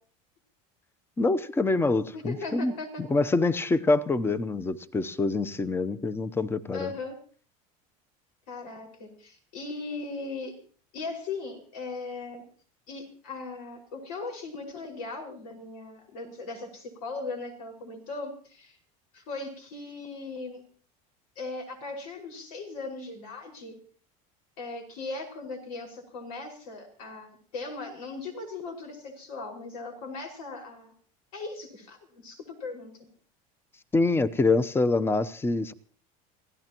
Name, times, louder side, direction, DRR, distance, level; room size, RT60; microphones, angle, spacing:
voice 1, 1.2-2.7 3.0-6.9 33.9-35.7, left 3 dB, 15° left, 0.8 m, -25 dB
voice 2, 2.1-3.0 6.7-7.1 8.5-10.6 10.9-12.4 12.9-18.8 19.1-20.6 21.4-23.8 24.6-30.9 31.3-33.1, left 3 dB, 90° left, 5.4 m, -38 dB
27.5 x 16.5 x 3.0 m
supercardioid pair, 125°, 18 cm